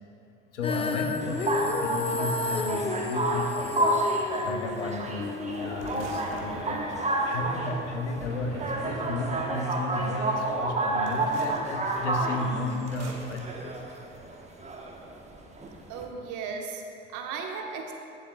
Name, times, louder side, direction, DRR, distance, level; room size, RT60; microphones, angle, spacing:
voice 1, 0.5-4.0 4.4-13.8, left 2 dB, 90° left, 4 dB, 0.8 m, -34 dB
Female singing, 0.6-6.8, left 4 dB, 15° left, 0.5 m, -32 dB
sound 1, 1.2-16.0, right 2 dB, 20° right, 1.1 m, -30 dB
sound 2, 5.8-7.3 8.2-9.6 11.0-11.6 12.9-13.4, right 3 dB, 85° right, 0.9 m, -43 dB
voice 2, 15.9-17.9, right 5 dB, 60° right, 2 dB, 1.2 m, -36 dB
15.0 x 7.3 x 2.3 m, 2.8 s
hypercardioid pair, 65°, 34 cm